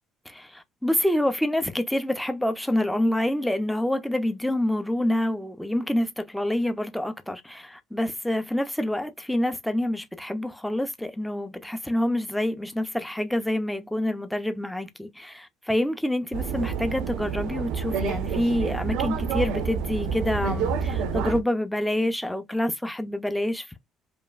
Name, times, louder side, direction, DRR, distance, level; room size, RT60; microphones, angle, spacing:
voice 1, 0.3-23.8, left 1 dB, ahead, 0.4 m, -27 dB
sound 1, 16.3-21.4, right 6 dB, 90° right, 0.7 m, -28 dB
5.1 x 2.5 x 2.3 m
cardioid pair, 180°, 0 cm